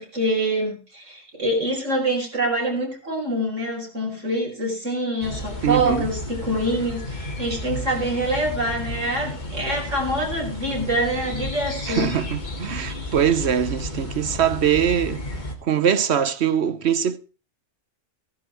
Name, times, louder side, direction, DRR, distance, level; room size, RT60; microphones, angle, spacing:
voice 1, 0.0-12.1, right 1 dB, 85° right, 5.2 m, -25 dB
sound 1, 5.2-15.6, left 1 dB, 40° left, 2.3 m, -32 dB
voice 2, 5.6-6.1 11.9-15.2 15.6-17.2, right 9 dB, 65° right, 1.1 m, -22 dB
16.5 x 11.0 x 4.5 m
omnidirectional pair, 1.2 m